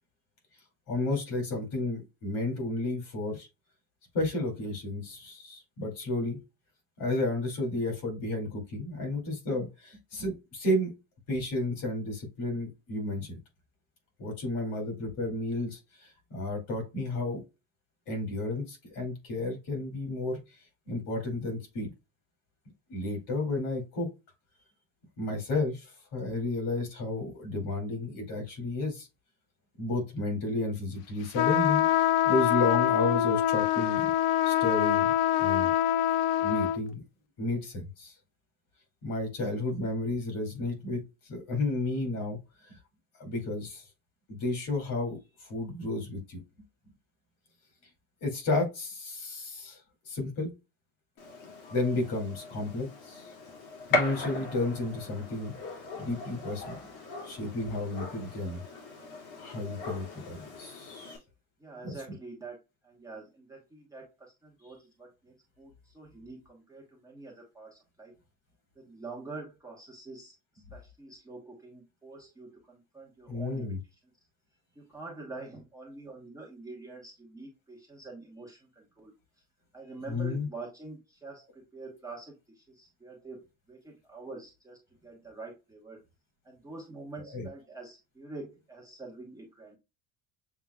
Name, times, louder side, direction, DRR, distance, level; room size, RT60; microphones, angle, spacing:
voice 1, 0.9-3.5 4.1-6.4 7.0-10.9 11.3-13.4 14.2-17.4 18.1-20.4 20.9-21.9 22.9-24.1 25.2-29.1 29.8-34.1 34.4-35.7 36.4-37.0 37.4-38.1 39.0-41.0 41.3-42.4 43.2-43.8 44.3-46.4 48.2-49.8 50.1-50.5 51.7-53.3 53.9-55.5 56.0-56.8 57.2-58.6 59.4-61.2 61.8-61.9 73.3-73.8 80.1-80.5 87.3-87.5, left 2 dB, 45° left, 2 dB, 2.4 m, -32 dB
sound 1, 31.3-36.8, left 12 dB, 65° left, 0.5 m, -25 dB
Gunshot gunfire, 51.2-61.2, left 2 dB, 85° left, 2.3 m, -38 dB
voice 2, 61.6-68.1 68.7-73.8 74.8-79.1 79.7-86.0 86.4-89.8, right 3 dB, 10° right, -3 dB, 1.0 m, -46 dB
7.1 x 3.0 x 2.3 m, 0.25 s
cardioid pair, 170°, 43 cm